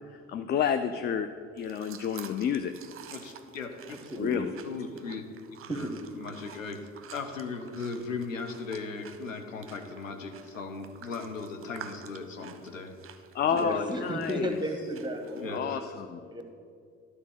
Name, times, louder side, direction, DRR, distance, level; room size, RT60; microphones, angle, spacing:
voice 1, 0.3-1.3 1.6-2.7 4.2-4.5 13.3-14.6 15.5-16.2, left 8 dB, 30° left, 9 dB, 0.4 m, -29 dB
sound 1, 1.6-15.6, right 8 dB, 35° right, 0.7 m, -50 dB
voice 2, 3.1-4.0 4.6-5.3 5.7-12.9 13.4-13.8 15.4-15.9, left 4 dB, 90° left, 6 dB, 0.7 m, -38 dB
voice 3, 3.9-4.5 5.7-6.0 13.5-15.8 16.3-16.4, right 1 dB, 10° right, 5 dB, 1.1 m, -34 dB
11.5 x 4.2 x 6.4 m, 2.2 s
figure-of-eight pair, 55°, 38 cm